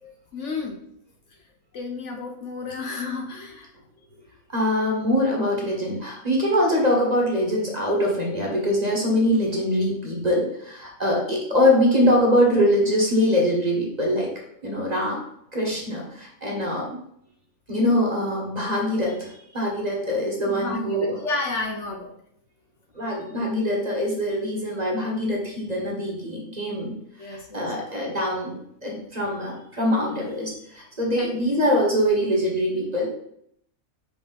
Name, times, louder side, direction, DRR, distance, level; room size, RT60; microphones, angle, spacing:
voice 1, 0.3-0.7 1.7-3.7 20.5-22.1 26.9-27.7 31.2-31.5, left 3 dB, 60° left, 3 dB, 1.0 m, -31 dB
voice 2, 4.5-14.3 14.6-15.2 15.5-17.0 17.7-21.2 22.9-26.9 27.2-33.1, equal, 30° right, -1 dB, 1.4 m, -23 dB
5.1 x 4.9 x 4.0 m, 0.73 s
omnidirectional pair, 1.5 m